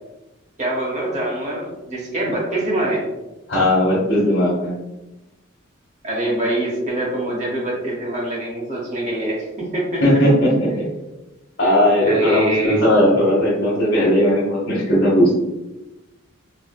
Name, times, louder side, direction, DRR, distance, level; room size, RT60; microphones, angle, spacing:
voice 1, 0.6-3.0 6.0-10.0 12.0-12.8, right 1 dB, 35° right, -3 dB, 0.8 m, -24 dB
voice 2, 3.5-4.7 10.0-10.9 11.6-15.3, equal, 60° left, -9 dB, 1.0 m, -17 dB
4.1 x 2.1 x 2.3 m, 1.0 s
head